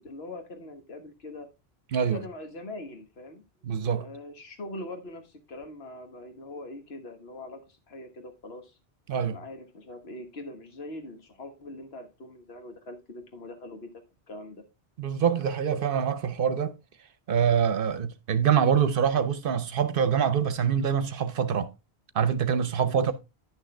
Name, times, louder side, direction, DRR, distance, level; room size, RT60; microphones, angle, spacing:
voice 1, 0.0-1.5 2.0-3.4 3.8-8.8 9.3-13.9 14.3-14.6 22.9-23.1, left 2 dB, 70° left, 1.6 m, -42 dB
voice 2, 3.6-4.1 9.1-9.4 15.0-16.7 17.3-21.7 22.1-23.1, right 7 dB, 60° right, 0.8 m, -25 dB
10.5 x 6.3 x 3.3 m
omnidirectional pair, 1.1 m